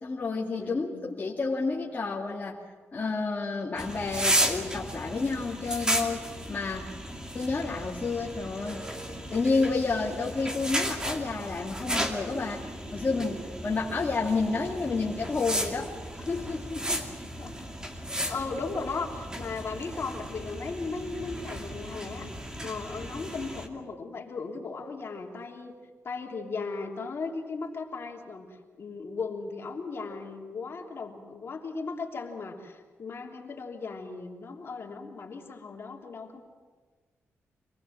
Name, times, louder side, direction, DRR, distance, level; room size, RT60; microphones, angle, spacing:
voice 1, 0.0-2.6 2.9-6.9 7.3-8.8 9.3-17.1 18.1-18.4, left 4 dB, 35° left, -4 dB, 2.4 m, -30 dB
voice 2, 0.6-1.1 17.4-17.5 18.3-22.3 22.6-25.8 26.0-36.4, left 4 dB, 50° left, 1 dB, 3.2 m, -37 dB
sound 1, 3.8-23.7, equal, 15° right, 2.4 m, -34 dB
26.0 x 19.5 x 7.6 m, 1.5 s
wide cardioid pair, 115°, 5 cm